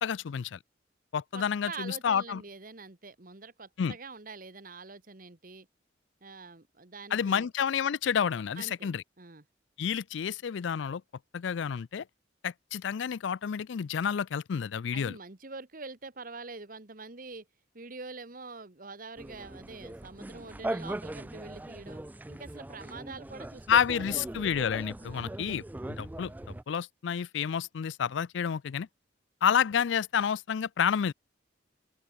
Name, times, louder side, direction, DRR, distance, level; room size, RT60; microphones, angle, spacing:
voice 1, 0.0-0.6 1.1-2.4 3.8-3.9 7.1-9.0 9.8-11.0 11.3-12.0 12.4-15.2 23.7-25.6 26.0-28.9 29.4-31.1, left 7 dB, 75° left, 0.4 m, -29 dB
voice 2, 1.3-5.7 6.2-7.5 8.5-8.9 9.2-9.4 14.9-17.5 17.7-22.0 22.3-23.6 23.9-24.6 25.0-25.4, right 3 dB, 45° right, 1.6 m, -45 dB
sound 1, 19.2-26.6, right 1 dB, 10° right, 0.3 m, -40 dB
open air
head